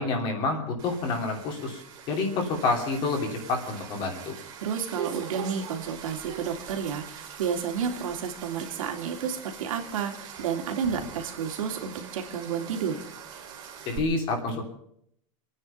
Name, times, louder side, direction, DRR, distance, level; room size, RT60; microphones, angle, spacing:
voice 1, 0.0-1.8 2.1-4.3 13.9-14.6, left 3 dB, 30° left, 3 dB, 3.0 m, -28 dB
sound 1, 0.8-14.0, right 8 dB, 25° right, 2.8 m, -42 dB
voice 2, 4.6-13.0, right 7 dB, 85° right, 3 dB, 3.1 m, -31 dB
24.5 x 9.8 x 5.6 m, 0.72 s
supercardioid pair, 175°, 17 cm